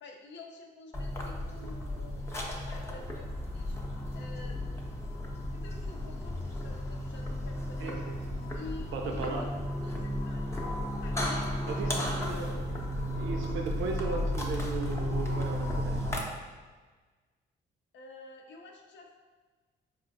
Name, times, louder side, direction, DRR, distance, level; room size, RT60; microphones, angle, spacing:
voice 1, 0.0-2.2 2.6-3.8 4.1-5.2 5.5-8.0 8.5-9.5 9.8-10.6 11.0-12.0 17.9-19.2, left 3 dB, 65° left, 2 dB, 0.6 m, -49 dB
sound 1, 0.9-16.2, left 1 dB, 15° left, 0.6 m, -34 dB
voice 2, 7.8-8.4 8.8-9.5 11.7-12.8 13.2-16.2, right 4 dB, 75° right, 2 dB, 0.5 m, -37 dB
4.2 x 2.4 x 2.6 m, 1.4 s
cardioid pair, 90°, 20 cm